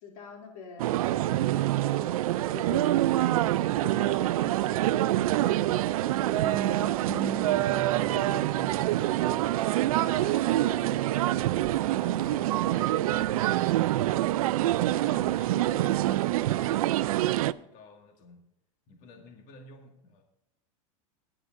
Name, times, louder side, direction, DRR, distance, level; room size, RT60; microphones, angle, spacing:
voice 1, 0.0-5.6 6.0-9.5 9.9-11.5 12.2-12.4 12.6-13.0 15.8-16.9, left 4 dB, 80° left, 1 dB, 2.8 m, -46 dB
sound 1, 0.8-17.5, right 15 dB, 80° right, 0.4 m, -26 dB
sound 2, 6.0-11.9, right 7 dB, 20° right, 0.6 m, -40 dB
voice 2, 10.0-10.9 11.5-18.4 18.9-20.2, left 3 dB, 45° left, 2 dB, 1.9 m, -50 dB
19.0 x 9.9 x 2.5 m, 0.84 s
hypercardioid pair, 115°, 18 cm